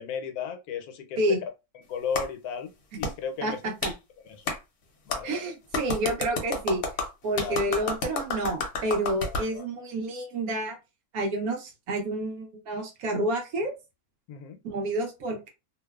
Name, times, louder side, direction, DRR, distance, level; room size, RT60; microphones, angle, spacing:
voice 1, 0.0-1.4 1.7-2.7 3.0-3.6 4.2-4.5 5.1-5.5 7.4-7.8 9.2-9.7 14.3-14.6, left 6 dB, 80° left, 1.1 m, -35 dB
Clapping, 2.1-2.3 3.0-3.1 3.8-3.9 4.5-4.6 5.1-5.2 5.7-9.5, left 3 dB, 60° left, 0.8 m, -30 dB
voice 2, 3.4-3.9 5.2-6.8 7.2-10.8 11.1-13.7 14.6-15.5, right 1 dB, 70° right, 1.2 m, -29 dB
2.9 x 2.0 x 2.3 m
omnidirectional pair, 1.6 m